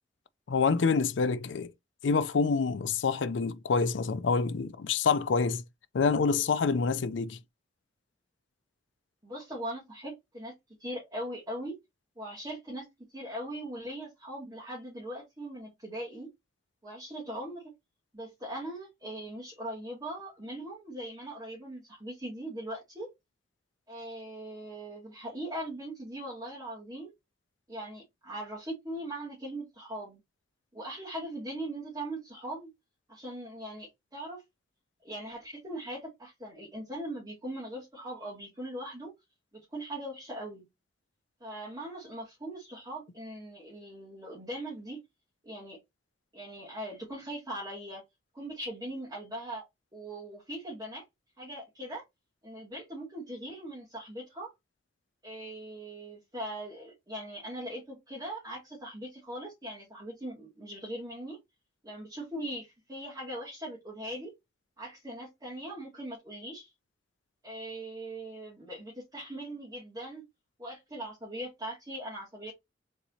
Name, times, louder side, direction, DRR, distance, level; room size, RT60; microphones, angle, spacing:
voice 1, 0.5-1.7 2.0-5.6 5.9-7.4, left 5 dB, 85° left, 0.5 m, -27 dB
voice 2, 9.2-10.5 10.8-11.7 12.2-12.9 13.1-16.3 16.8-17.7 18.1-23.1 23.9-27.1 27.7-30.2 30.7-32.7 33.1-34.4 35.0-39.1 39.5-40.7 41.4-45.0 45.4-45.8 46.3-48.0 48.3-49.6 49.9-51.0 51.4-52.0 52.4-54.5 55.2-61.4 61.8-64.3 64.8-66.7 67.4-70.2 70.6-72.5, right 1 dB, 20° right, 2.2 m, -40 dB
4.5 x 4.0 x 2.7 m
head